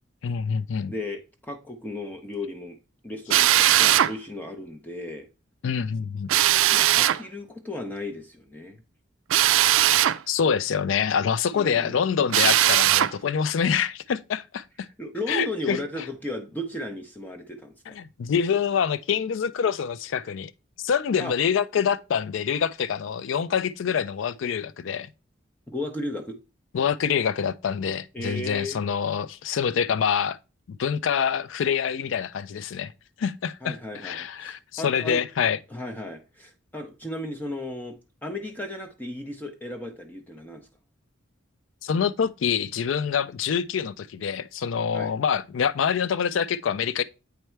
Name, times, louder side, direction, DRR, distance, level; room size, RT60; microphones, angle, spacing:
voice 1, 0.2-0.9 5.6-6.3 10.3-14.9 15.3-15.8 17.9-20.5 20.8-25.1 26.7-30.4 30.7-32.9 33.2-33.8 34.0-35.6 41.8-47.0, left 7 dB, 75° left, 0.4 m, -26 dB
voice 2, 0.9-2.8 3.0-5.3 6.7-8.8 11.5-12.0 15.0-18.0 21.2-21.3 25.7-26.4 28.1-28.8 33.6-35.2 35.7-40.7 44.9-45.1, left 1 dB, 10° left, 0.6 m, -35 dB
Drill, 3.3-4.1 6.3-7.2 9.3-10.2 12.3-13.1, right 13 dB, 80° right, 0.3 m, -19 dB
8.1 x 3.3 x 4.4 m
head